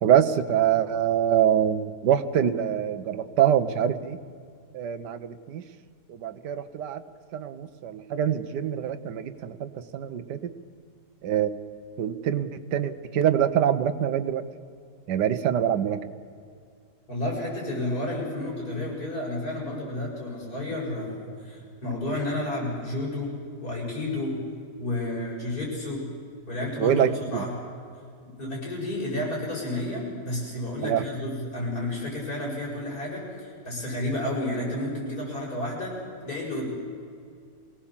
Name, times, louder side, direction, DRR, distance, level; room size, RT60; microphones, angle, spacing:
voice 1, 0.0-4.2 4.7-5.6 6.2-7.0 7.3-10.4 11.2-11.6 12.0-14.4 15.1-16.0 26.8-27.4 30.8-31.0, right 9 dB, 85° right, 12 dB, 1.5 m, -24 dB
voice 2, 17.1-23.3 23.6-24.4 24.8-26.1 26.5-27.6 28.4-36.0 36.2-36.7, left 1 dB, 60° left, -4 dB, 7.0 m, -31 dB
24.5 x 17.5 x 7.3 m, 2.3 s
omnidirectional pair, 1.8 m